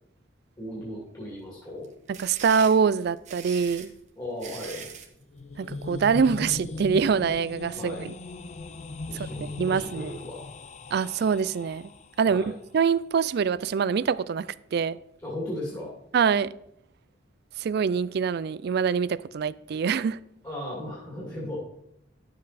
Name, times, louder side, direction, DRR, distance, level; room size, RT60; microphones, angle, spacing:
voice 1, 0.6-1.9 4.2-4.9 7.7-8.0 9.0-10.4 12.2-12.5 15.2-15.9 20.4-21.6, left 1 dB, 20° left, 2.4 m, -36 dB
sound 1, 1.8-5.1, right 7 dB, 40° right, 1.2 m, -41 dB
voice 2, 2.1-3.9 5.6-8.1 9.6-10.1 10.9-11.9 12.2-15.0 16.1-16.5 17.6-20.2, right 6 dB, 55° right, 0.3 m, -24 dB
sound 2, 5.2-12.2, left 3 dB, 35° left, 0.4 m, -38 dB
11.5 x 7.5 x 4.1 m
head